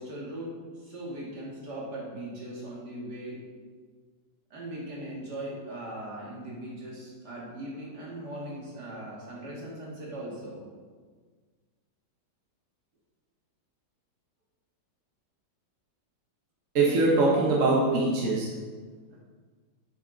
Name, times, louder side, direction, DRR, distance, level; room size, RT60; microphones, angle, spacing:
voice 1, 0.0-3.4 4.5-10.6, right 1 dB, 65° right, -5 dB, 2.7 m, -39 dB
voice 2, 16.7-18.5, right 2 dB, 50° right, -4 dB, 1.5 m, -22 dB
8.0 x 7.6 x 4.0 m, 1.5 s
omnidirectional pair, 1.9 m